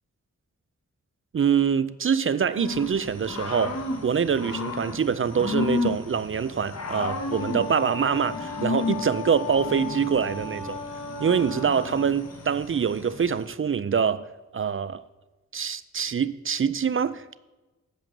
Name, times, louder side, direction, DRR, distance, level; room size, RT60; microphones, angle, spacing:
voice 1, 1.3-10.8 11.2-14.3 14.5-15.0 15.5-17.4, right 7 dB, 45° right, 0.4 m, -25 dB
Growling / Cricket, 2.5-13.5, left 3 dB, 60° left, 1.4 m, -33 dB
Wind instrument woodwind instrument, 7.3-12.2, left 4 dB, 75° left, 2.9 m, -36 dB
9.2 x 5.3 x 6.7 m
cardioid pair, 65°, 30 cm